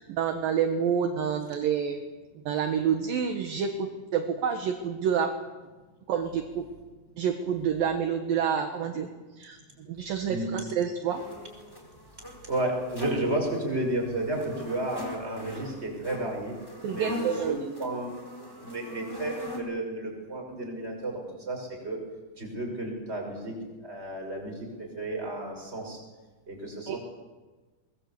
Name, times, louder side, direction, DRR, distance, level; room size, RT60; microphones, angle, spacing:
voice 1, 0.0-2.0 2.5-5.3 6.1-6.7 7.2-9.1 9.4-11.2 16.8-17.6 26.9-27.0, right 7 dB, 65° right, 5 dB, 2.8 m, -28 dB
sound 1, 11.1-19.6, left 1 dB, 5° left, 3.9 m, -41 dB
voice 2, 12.4-16.6 16.9-18.2 18.6-22.0 22.4-23.5 23.8-26.0 26.5-27.0, right 1 dB, 15° right, 1 dB, 6.1 m, -32 dB
23.5 x 21.0 x 8.4 m, 1.3 s
omnidirectional pair, 5.0 m